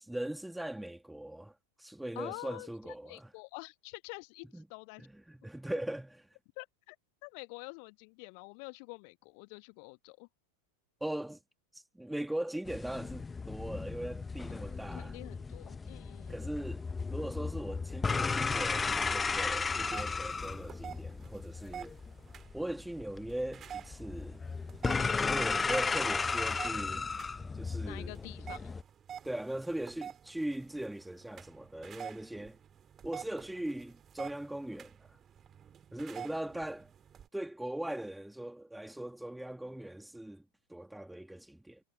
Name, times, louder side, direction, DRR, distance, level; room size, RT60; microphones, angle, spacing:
voice 1, 0.0-1.5 1.8-3.3 4.5-4.7 5.0-6.1 11.0-11.4 11.7-15.2 16.3-16.8 17.1-21.9 22.5-24.4 25.2-27.1 27.5-28.1 29.2-32.6 33.0-35.1 35.9-36.9 37.3-40.4 40.7-41.8, right 1 dB, 5° right, 2.8 m, -40 dB
voice 2, 2.1-5.1 6.6-7.0 7.2-10.3 14.5-16.4 25.0-25.3 27.8-28.6, left 40 dB or more, 45° left, 1.3 m, -47 dB
sound 1, 12.7-28.8, left 4 dB, 15° left, 1.1 m, -35 dB
sound 2, 19.8-37.3, right 8 dB, 25° right, 2.7 m, -49 dB
figure-of-eight pair, 90°, 0 cm